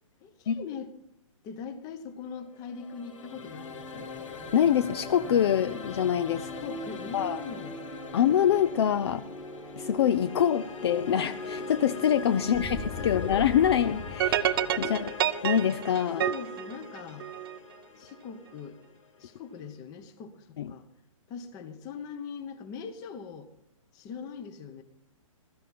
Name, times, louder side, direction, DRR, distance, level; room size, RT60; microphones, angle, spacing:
voice 1, 0.2-0.9 1.4-4.1 6.4-7.8 12.4-13.5 14.8-15.1 16.1-17.3 17.9-18.8 19.2-20.9 21.3-23.5 23.9-24.8, left 6 dB, 20° left, 12 dB, 1.0 m, -41 dB
sound 1, 2.4-19.5, left 5 dB, 65° left, 1.8 m, -42 dB
sound 2, 3.3-16.8, left 1 dB, 5° left, 1.6 m, -41 dB
voice 2, 4.5-6.5 7.1-7.4 8.1-9.2 9.8-15.1 15.4-16.2 20.6-20.7, left 9 dB, 50° left, 14 dB, 0.5 m, -25 dB
sound 3, 14.2-17.6, right 11 dB, 45° right, 0.6 m, -28 dB
16.0 x 13.5 x 4.2 m, 0.78 s
hypercardioid pair, 155°, 17 cm